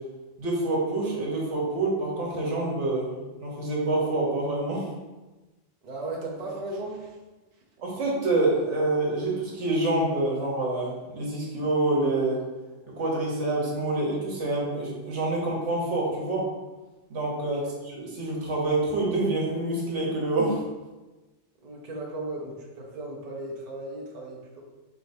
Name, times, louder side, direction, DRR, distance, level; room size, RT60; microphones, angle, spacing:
voice 1, 0.4-3.1 3.4-4.9 7.8-12.4 13.0-16.5 17.1-20.6, right 2 dB, 80° right, -4 dB, 1.4 m, -27 dB
voice 2, 5.8-7.2 17.4-17.7 21.6-24.6, right 2 dB, 40° right, -3 dB, 0.8 m, -36 dB
4.5 x 3.6 x 2.6 m, 1.1 s
omnidirectional pair, 1.2 m